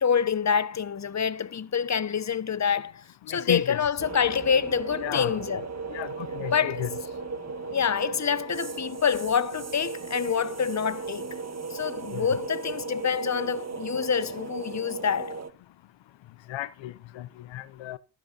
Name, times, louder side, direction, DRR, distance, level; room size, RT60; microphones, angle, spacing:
voice 1, 0.0-5.6 6.5-6.8 7.7-11.4 11.7-15.4, left 7 dB, 40° left, 1.2 m, -27 dB
voice 2, 3.3-3.8 5.0-5.4 5.9-6.9 12.1-12.3 16.5-18.0, left 15 dB, 80° left, 0.8 m, -33 dB
sound 1, 4.0-15.5, right 4 dB, 35° right, 1.5 m, -36 dB
15.0 x 12.0 x 4.2 m
supercardioid pair, 55°, 44 cm